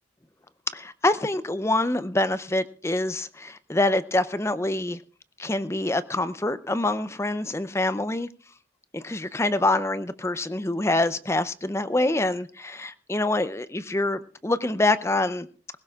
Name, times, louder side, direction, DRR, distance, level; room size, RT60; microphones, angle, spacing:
voice 1, 0.7-5.0 5.4-8.3 8.9-15.5, left 2 dB, 15° left, 13 dB, 0.5 m, -25 dB
20.5 x 17.5 x 2.4 m, 0.39 s
head